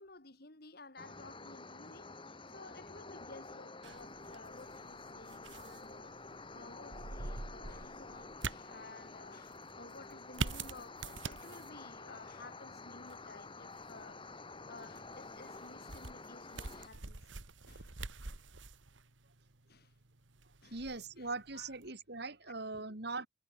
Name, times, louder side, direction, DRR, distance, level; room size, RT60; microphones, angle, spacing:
voice 1, 0.0-2.1 2.5-6.2 6.5-14.3 14.6-17.2 17.6-17.9 19.7-20.0 20.6-20.8 21.2-21.8 22.4-23.0, left 3 dB, 55° left, 2.9 m, -55 dB
sound 1, 1.0-16.9, left 3 dB, 25° left, 3.2 m, -50 dB
sound 2, 3.8-21.9, right 3 dB, 80° right, 1.8 m, -47 dB
voice 2, 20.7-23.3, right 3 dB, 60° right, 2.6 m, -41 dB
head